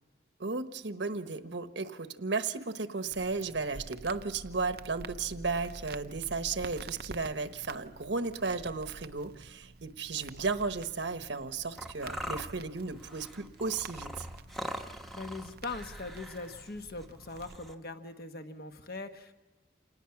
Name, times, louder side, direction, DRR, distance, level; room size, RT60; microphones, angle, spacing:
voice 1, 0.4-14.3, right 4 dB, 70° right, 9 dB, 1.1 m, -34 dB
Crackle, 3.1-17.6, right 3 dB, 55° right, 0.6 m, -49 dB
sound 1, 11.8-17.7, equal, ahead, 1.0 m, -42 dB
voice 2, 15.1-19.3, left 3 dB, 50° left, 7 dB, 1.3 m, -41 dB
27.5 x 19.5 x 5.9 m, 1.2 s
head